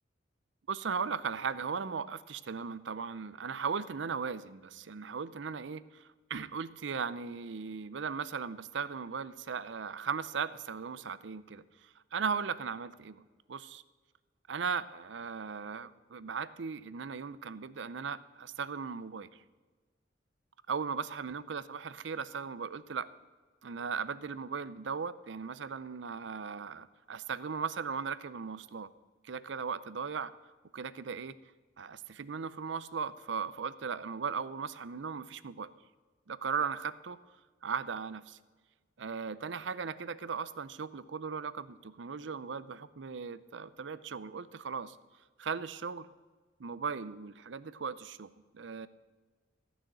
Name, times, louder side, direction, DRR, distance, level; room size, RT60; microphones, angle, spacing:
voice 1, 0.7-6.0 6.3-13.8 14.5-19.3 20.7-23.1 23.6-28.9 29.2-30.3 30.7-31.3 31.8-35.7 36.3-37.2 37.6-38.4 39.0-45.0 45.4-46.1 46.6-48.3 48.5-48.9, right 6 dB, 70° right, 16 dB, 0.6 m, -37 dB
14.5 x 6.3 x 8.9 m, 1.3 s
head